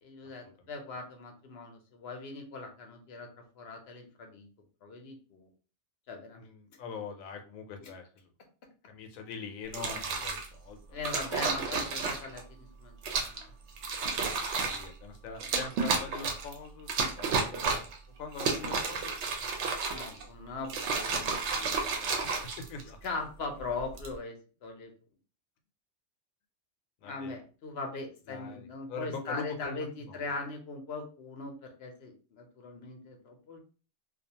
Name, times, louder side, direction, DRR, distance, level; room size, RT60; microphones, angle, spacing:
voice 1, 0.0-3.3 3.6-4.5 4.8-5.5 6.1-6.5 7.8-7.9 10.9-13.6 19.9-21.3 21.6-22.4 23.0-24.4 24.6-24.9 27.0-33.6, left 3 dB, 60° left, 3 dB, 0.8 m, -40 dB
voice 2, 6.4-8.3 8.9-11.0 14.7-20.3 22.2-23.0 27.0-27.4 28.3-30.3, left 5 dB, 85° left, 5 dB, 1.0 m, -44 dB
sound 1, 9.7-10.5 11.0-12.4 13.0-13.4 13.8-14.9 15.4-16.5 16.9-18.0 18.3-20.2 20.6-23.1 23.8-24.1, right 4 dB, 65° right, 0.8 m, -31 dB
2.4 x 2.3 x 2.7 m, 0.37 s
omnidirectional pair, 1.4 m